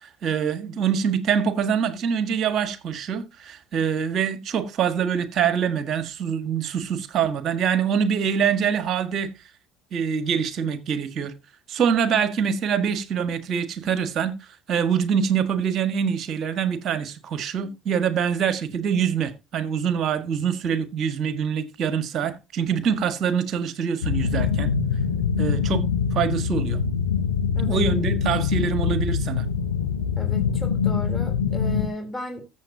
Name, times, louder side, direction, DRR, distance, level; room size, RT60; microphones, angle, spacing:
voice 1, 0.0-9.3 9.9-11.3 11.7-14.3 14.7-24.7 25.4-25.8 26.1-26.8 27.7-29.5, right 7 dB, 50° right, 1.6 m, -25 dB
sound 1, 24.0-31.9, left 6 dB, 90° left, 0.8 m, -24 dB
voice 2, 30.2-32.4, left 1 dB, 20° left, 3.4 m, -35 dB
14.0 x 7.2 x 2.8 m
hypercardioid pair, 65°, 0 cm